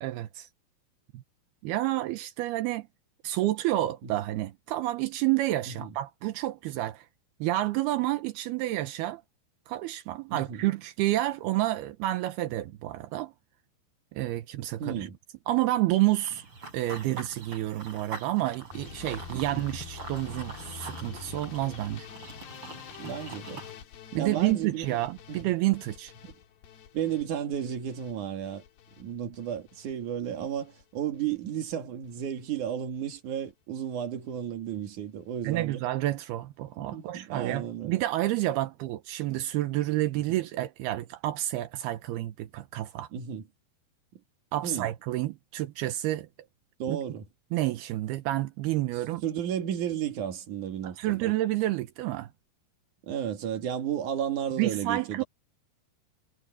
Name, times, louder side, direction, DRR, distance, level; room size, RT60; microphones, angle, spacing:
voice 1, 0.0-0.5 1.1-1.2 1.6-2.9 3.2-7.1 7.4-9.2 9.7-13.3 14.1-15.1 15.5-16.4 16.7-22.1 24.1-26.1 35.4-43.1 44.5-46.3 46.9-47.0 47.5-49.2 51.0-52.3 54.6-55.2, right 15 dB, 80° right, 2.9 m, -29 dB
voice 2, 10.3-10.6 14.8-15.2 19.3-19.6 23.0-23.6 24.2-24.9 25.3-25.5 26.2-26.3 26.9-28.6 29.0-35.8 36.8-38.0 43.1-43.4 44.6-44.9 46.8-47.3 49.2-51.3 53.0-55.2, right 9 dB, 55° right, 3.4 m, -33 dB
Run / Bird vocalization bird call bird song, 16.3-23.7, right 4 dB, 35° right, 5.8 m, -44 dB
sound 1, 18.7-30.8 31.1-31.7 32.0-32.6 32.9-33.2 33.5-33.6 33.8-33.9, left 8 dB, 85° left, 4.0 m, -46 dB
omnidirectional pair, 4.6 m